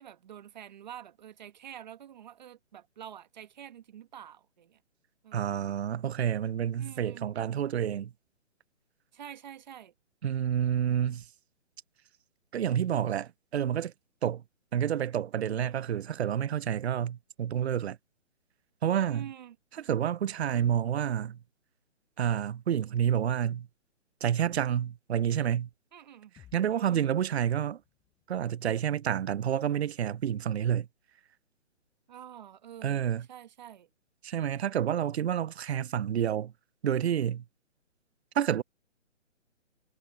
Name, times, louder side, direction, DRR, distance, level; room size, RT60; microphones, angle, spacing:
voice 1, 0.0-4.8 5.2-5.6 6.8-7.3 9.1-9.9 19.1-19.6 25.9-26.3 26.7-27.1 32.1-33.9, right 10 dB, 35° right, 1.5 m, -47 dB
voice 2, 5.3-8.1 10.2-11.3 12.5-13.9 14.2-14.4 14.7-18.0 18.8-19.3 19.8-21.4 22.2-23.7 24.2-25.7 26.5-27.8 28.3-30.9 32.8-33.3 34.2-36.5 36.8-37.4 38.3-38.6, right 9 dB, 55° right, 0.6 m, -29 dB
sound 1, 26.4-30.2, left 11 dB, 10° left, 5.3 m, -63 dB
hypercardioid pair, 170°, 38 cm